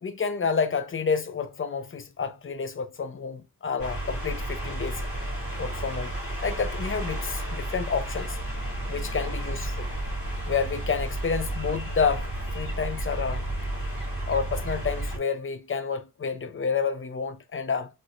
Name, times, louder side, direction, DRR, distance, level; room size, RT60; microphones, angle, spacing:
voice 1, 0.0-5.1 5.6-6.1 6.4-8.4 8.9-9.9 10.5-12.3 12.5-13.5 14.3-17.9, left 5 dB, 35° left, 0.5 m, -29 dB
Moray coast, 3.8-15.2, right 1 dB, 65° left, 2.6 m, -32 dB
4.5 x 3.0 x 2.5 m
wide cardioid pair, 105°, 37 cm